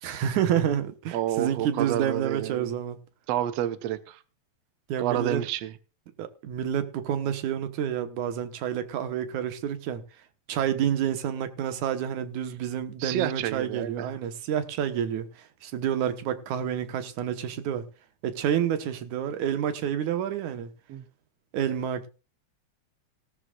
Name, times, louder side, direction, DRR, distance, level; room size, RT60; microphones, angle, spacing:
voice 1, 0.0-3.0 4.9-5.4 6.2-10.0 10.5-17.9 18.2-20.7 21.5-22.1, right 9 dB, 85° right, 2.7 m, -29 dB
voice 2, 1.1-2.7 3.3-4.2 5.0-5.7 13.0-14.2 20.9-21.1, right 11 dB, 65° right, 1.9 m, -29 dB
17.5 x 13.0 x 2.4 m
omnidirectional pair, 3.3 m